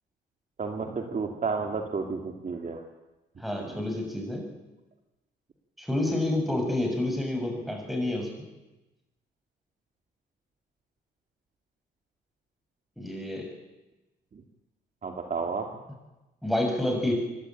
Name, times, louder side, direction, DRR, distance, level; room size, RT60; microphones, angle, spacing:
voice 1, 0.6-2.8 3.6-3.8 15.0-15.6, right 4 dB, 40° right, 4 dB, 2.2 m, -31 dB
voice 2, 3.4-4.5 5.8-8.3 13.0-13.5 16.4-17.1, left 1 dB, ahead, 2 dB, 6.8 m, -29 dB
26.5 x 12.0 x 9.0 m, 1.0 s
cardioid pair, 90°, 20 cm